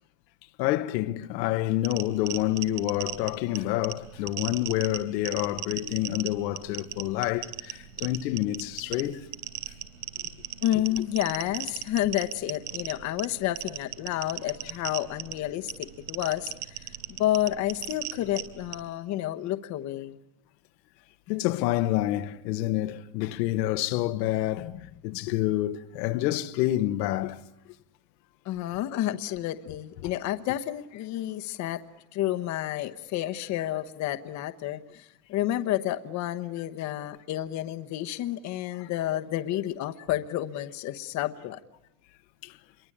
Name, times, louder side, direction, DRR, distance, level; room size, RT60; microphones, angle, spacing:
voice 1, 0.6-9.2 21.3-24.7 25.0-27.4 42.4-42.6, left 15 dB, 85° left, 1.4 m, -28 dB
sound 1, 1.8-18.9, right 13 dB, 80° right, 3.7 m, -38 dB
voice 2, 10.6-20.2 24.6-24.9 28.4-31.8 32.1-41.6, left 13 dB, 35° left, 1.1 m, -30 dB
28.0 x 23.0 x 8.7 m
cardioid pair, 165°, 49 cm